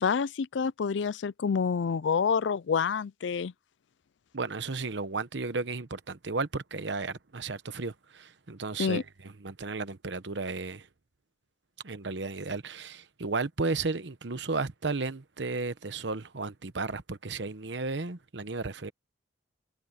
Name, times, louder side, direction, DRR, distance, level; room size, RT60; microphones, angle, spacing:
voice 1, 0.0-3.5 8.8-9.0, left 6 dB, 80° left, 0.4 m, -28 dB
voice 2, 4.3-10.9 11.8-18.9, right 3 dB, 75° right, 1.0 m, -34 dB
head